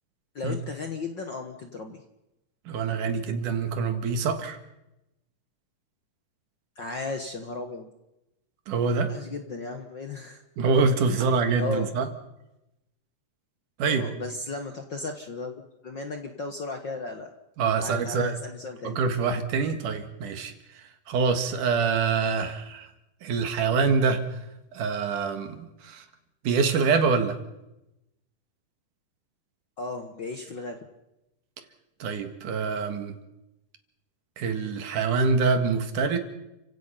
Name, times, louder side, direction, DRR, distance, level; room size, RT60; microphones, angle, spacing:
voice 1, 0.3-2.0 6.8-7.9 9.1-10.4 11.1-11.9 13.9-17.3 17.8-19.0 29.8-30.8, left 3 dB, 50° left, 5 dB, 1.4 m, -35 dB
voice 2, 2.7-4.6 8.7-9.1 10.6-12.1 13.8-14.1 17.6-18.4 18.8-20.5 21.1-22.9 23.2-24.4 24.7-26.1 26.4-27.4 32.0-33.2 34.4-36.2, right 5 dB, 75° right, 8 dB, 3.2 m, -25 dB
30.0 x 16.5 x 5.6 m, 0.90 s
omnidirectional pair, 3.7 m